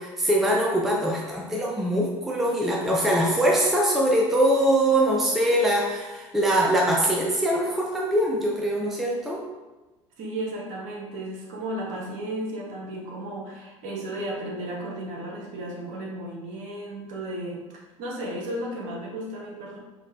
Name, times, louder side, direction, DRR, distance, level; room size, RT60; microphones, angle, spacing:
voice 1, 0.0-9.4, right 1 dB, ahead, -2 dB, 0.4 m, -23 dB
voice 2, 10.2-19.8, right 1 dB, 50° right, -2 dB, 0.8 m, -34 dB
3.8 x 2.2 x 2.6 m, 1.1 s
figure-of-eight pair, 70°, 17 cm